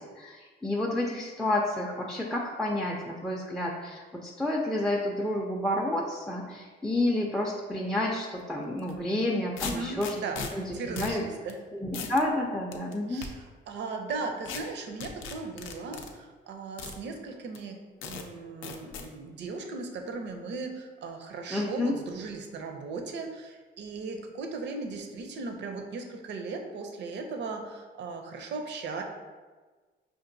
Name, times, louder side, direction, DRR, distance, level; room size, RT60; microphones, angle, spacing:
voice 1, 0.0-10.1 10.5-11.2 11.7-13.2 21.5-21.9, left 1 dB, ahead, -1 dB, 0.4 m, -30 dB
sound 1, 8.8-8.9 9.6-10.5 11.0-11.2 11.5-11.6 11.9-12.2 12.7-13.3 14.5-14.6 15.0-16.1 16.8-17.0 17.5-17.6 18.0-18.2 18.6-19.1, left 6 dB, 80° left, 0.5 m, -37 dB
voice 2, 9.5-11.6 13.1-17.8 18.0-29.0, right 4 dB, 65° right, 4 dB, 0.5 m, -37 dB
5.1 x 2.5 x 2.6 m, 1.4 s
cardioid pair, 90°, 20 cm